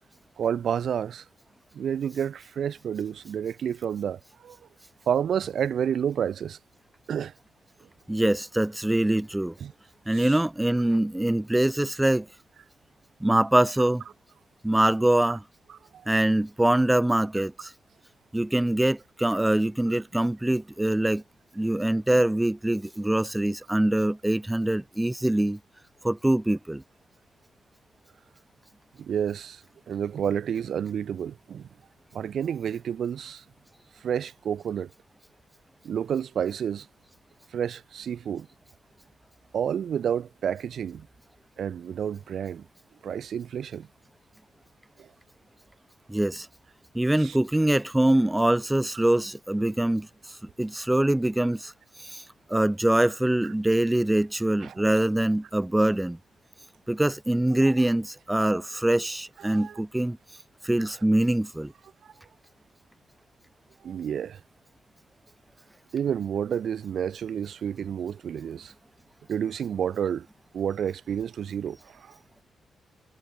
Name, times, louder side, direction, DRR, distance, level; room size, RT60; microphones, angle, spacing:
voice 1, 0.4-1.3 1.7-4.6 5.1-6.6 7.1-7.3 9.6-9.7 10.1-10.4 15.7-16.1 17.3-17.4 19.9-20.0 29.0-31.7 32.1-33.4 33.9-34.9 35.8-36.9 37.5-38.5 39.5-41.1 41.6-42.7 43.0-43.9 45.0-45.1 47.2-47.4 48.9-49.0 53.4-53.5 54.6-54.8 57.7-57.9 59.4-59.8 62.0-62.1 63.8-64.4 65.9-68.7 69.3-70.3 70.5-72.2, right 8 dB, 65° right, 3.9 m, -30 dB
voice 2, 8.1-9.5 10.1-12.3 13.2-14.0 14.6-15.4 16.1-17.7 18.3-21.2 21.6-25.6 26.0-26.8 46.1-46.5 46.9-51.7 52.0-52.2 52.5-56.2 56.9-60.2 60.6-61.7, right 1 dB, 10° right, 1.9 m, -24 dB
cardioid pair, 110°, 0 cm